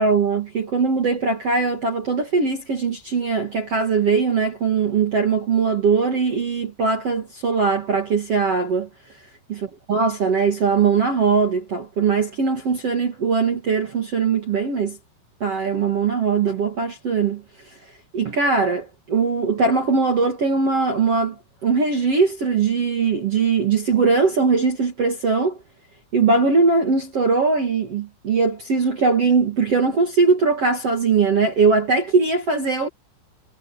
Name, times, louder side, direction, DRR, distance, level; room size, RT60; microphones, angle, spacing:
voice 1, 0.0-8.9 9.5-15.0 15.4-17.4 18.1-25.6 26.1-32.9, right 4 dB, 50° right, 1.8 m, -20 dB
omnidirectional pair, 5.9 m